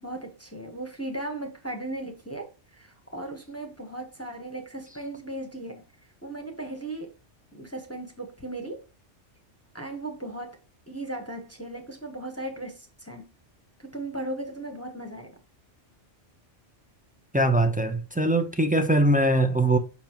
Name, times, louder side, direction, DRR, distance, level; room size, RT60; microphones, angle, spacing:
voice 1, 0.0-5.9 6.2-7.2 7.5-8.8 9.7-10.6 10.9-13.3 13.8-15.4, right 1 dB, 15° left, 0.9 m, -37 dB
voice 2, 17.3-19.8, right 1 dB, 10° right, 0.4 m, -22 dB
7.1 x 5.4 x 2.9 m
omnidirectional pair, 1.2 m